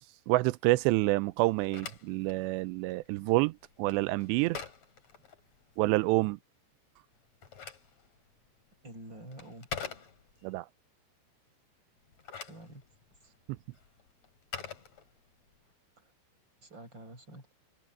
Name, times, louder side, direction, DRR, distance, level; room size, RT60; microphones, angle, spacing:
voice 1, 0.3-4.6 5.8-6.4 10.4-10.7, right 21 dB, 85° right, 2.7 m, -28 dB
Telephone, 1.4-5.9 7.1-10.5 12.0-15.6, left 6 dB, 40° left, 3.9 m, -46 dB
voice 2, 8.8-9.7 12.5-12.8 16.0-16.1 16.6-17.5, right 1 dB, 25° right, 8.3 m, -48 dB
omnidirectional pair, 5.1 m